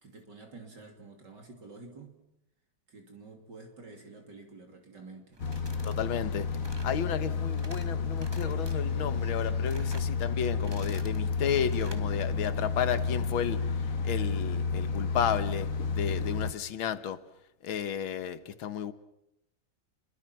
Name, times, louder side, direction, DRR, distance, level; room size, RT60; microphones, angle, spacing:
voice 1, 0.0-2.2 2.9-5.4, right 3 dB, 55° right, 3.3 m, -49 dB
sound 1, 5.3-6.0 6.3-7.0 7.4-7.9 8.2-8.7 9.2-10.1 10.5-11.2 11.6-12.0, right 1 dB, 15° right, 1.5 m, -49 dB
sound 2, 5.4-16.5, left 5 dB, 45° left, 1.6 m, -31 dB
voice 2, 5.9-6.6 6.8-13.8 14.0-17.2 17.6-18.9, left 8 dB, 80° left, 1.9 m, -33 dB
sound 3, 8.2-13.3, left 1 dB, 15° left, 5.7 m, -50 dB
30.0 x 23.0 x 6.0 m
omnidirectional pair, 2.2 m